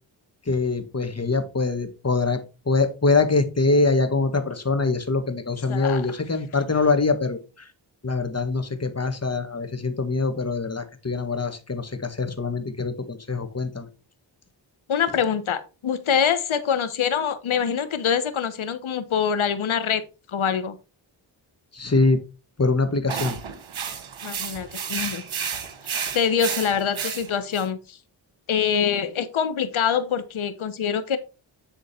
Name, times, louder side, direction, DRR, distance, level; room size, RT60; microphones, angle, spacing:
voice 1, 0.5-2.4 2.7-7.4 8.0-13.9 21.7-22.2 22.6-23.4, left 3 dB, 30° left, 8 dB, 1.7 m, -23 dB
voice 2, 5.7-6.1 14.9-20.0 20.3-20.8 24.2-25.2 25.8-28.0 28.5-31.2, left 7 dB, 80° left, 12 dB, 1.2 m, -25 dB
sound 1, 23.1-27.7, right 7 dB, 70° right, 1.6 m, -31 dB
10.0 x 3.8 x 4.4 m, 0.31 s
cardioid pair, 50°, 48 cm